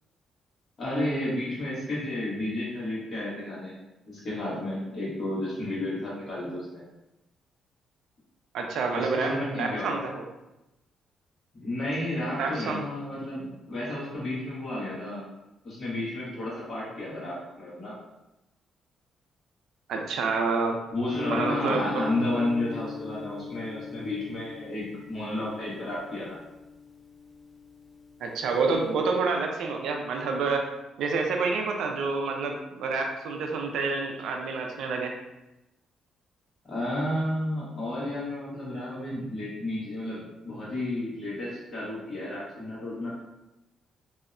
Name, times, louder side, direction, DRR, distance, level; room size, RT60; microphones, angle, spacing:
voice 1, 0.8-3.7 4.1-6.8 8.9-9.9 11.6-15.2 15.6-18.0 20.9-26.4 36.7-43.1, left 1 dB, 40° left, -7 dB, 1.1 m, -32 dB
voice 2, 8.5-10.2 12.4-12.8 19.9-20.8 21.3-22.0 28.2-30.7 31.0-35.1, right 4 dB, 75° right, 2 dB, 0.4 m, -28 dB
Guitar, 21.1-28.9, left 4 dB, 10° left, 0.5 m, -39 dB
2.6 x 2.1 x 2.4 m, 0.96 s
cardioid pair, 140°, 0 cm